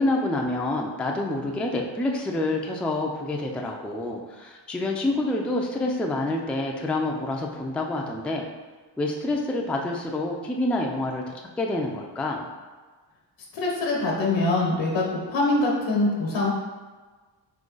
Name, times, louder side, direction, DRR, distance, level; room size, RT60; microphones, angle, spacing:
voice 1, 0.0-8.4 9.0-11.2 11.6-12.5, left 2 dB, 5° left, 1 dB, 0.3 m, -27 dB
voice 2, 13.5-15.0 15.3-16.5, left 2 dB, 80° left, -2 dB, 1.1 m, -23 dB
3.8 x 2.8 x 3.9 m, 1.3 s
cardioid pair, 90°, 44 cm